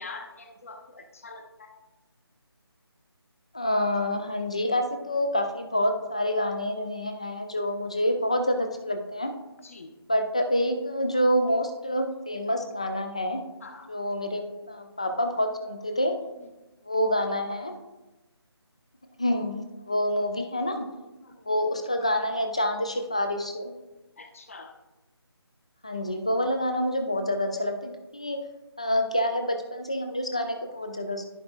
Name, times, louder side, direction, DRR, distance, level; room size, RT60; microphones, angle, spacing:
voice 1, 0.0-1.7 9.6-9.9 13.6-13.9 21.2-21.3 24.2-24.7, left 3 dB, 30° left, 6 dB, 0.9 m, -44 dB
voice 2, 3.5-9.3 10.1-13.4 13.9-16.2 16.8-17.7 19.2-20.9 21.4-23.7 25.8-28.4 28.8-31.2, left 1 dB, 15° left, 6 dB, 0.4 m, -27 dB
14.0 x 5.0 x 2.4 m, 1.1 s
figure-of-eight pair, 160°, 14 cm